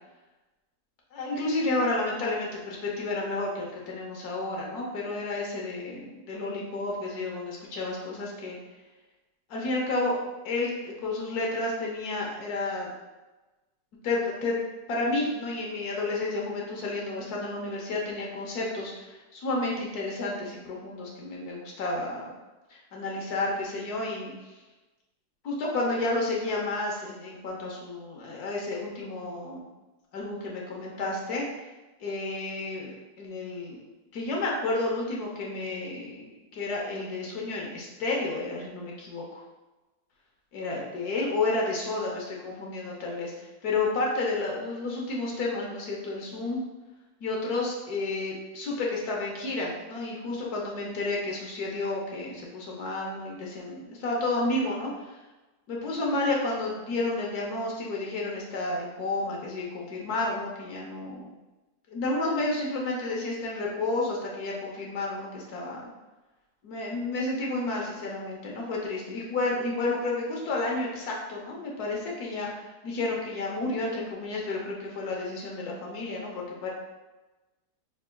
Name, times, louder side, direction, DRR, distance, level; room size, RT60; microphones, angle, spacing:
voice 1, 1.1-8.6 9.5-10.1 10.4-12.9 14.0-14.6 14.9-22.3 22.9-24.5 25.4-29.6 30.1-31.5 32.0-33.8 34.1-39.4 40.5-46.6 47.2-55.2 55.7-61.3 61.9-65.9 66.6-76.7, left 2 dB, 70° left, -2 dB, 1.4 m, -31 dB
5.9 x 3.7 x 2.2 m, 1.1 s
omnidirectional pair, 1.8 m